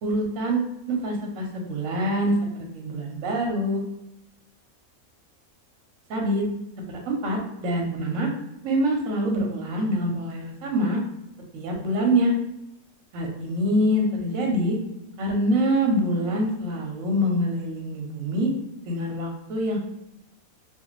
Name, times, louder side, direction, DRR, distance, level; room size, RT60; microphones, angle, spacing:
voice 1, 0.0-3.8 6.1-6.5 6.9-8.3 8.6-11.0 11.5-12.3 13.1-14.8 15.2-18.5 18.9-19.8, equal, 65° right, 1 dB, 0.9 m, -25 dB
2.5 x 2.4 x 3.0 m, 0.84 s
omnidirectional pair, 1.6 m